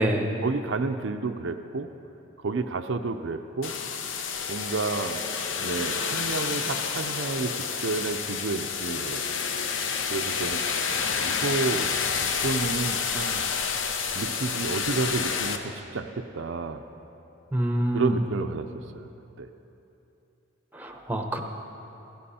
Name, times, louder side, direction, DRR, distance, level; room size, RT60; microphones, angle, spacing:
voice 1, 0.4-1.9 2.4-3.8 4.5-5.3 5.6-9.2 10.1-11.9 12.2-13.4 14.1-16.8 17.9-18.7 18.9-19.1 19.4-19.5, right 3 dB, 65° right, 6 dB, 0.5 m, -30 dB
sound 1, 3.6-15.6, left 6 dB, 65° left, 0.8 m, -29 dB
voice 2, 17.5-18.2 20.8-21.4, right 1 dB, 10° right, 4 dB, 0.8 m, -26 dB
16.5 x 14.0 x 4.3 m, 3.0 s
head